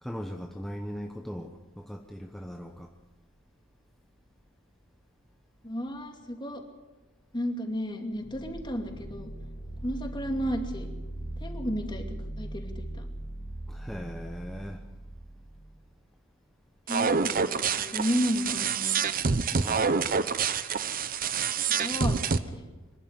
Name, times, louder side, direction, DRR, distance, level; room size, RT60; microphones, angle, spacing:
voice 1, 0.0-2.9 13.7-14.8 19.4-20.2, equal, ahead, 3 dB, 1.0 m, -39 dB
voice 2, 5.6-6.6 7.3-9.3 9.8-10.9 11.4-12.0 12.4-13.0 16.9-19.0 21.7-22.2 22.5-22.6, equal, 25° left, 4 dB, 2.5 m, -32 dB
sound 1, 8.1-15.9, right 1 dB, 55° left, 5.7 m, -39 dB
sound 2, 16.9-22.4, right 5 dB, 45° right, 0.8 m, -27 dB
25.0 x 11.5 x 9.7 m, 1.2 s
head